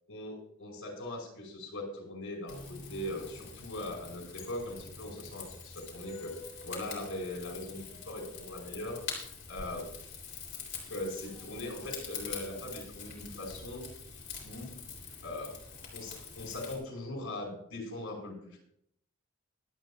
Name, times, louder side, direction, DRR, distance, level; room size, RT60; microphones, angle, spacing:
voice 1, 0.1-6.3 6.6-9.0 9.5-9.9 10.9-13.9 14.4-14.7 15.2-15.5 15.9-18.6, left 1 dB, 85° left, -1 dB, 5.2 m, -40 dB
Rain / Fire, 2.5-16.8, left 5 dB, 55° left, 3.7 m, -45 dB
23.0 x 8.6 x 2.5 m, 0.72 s
head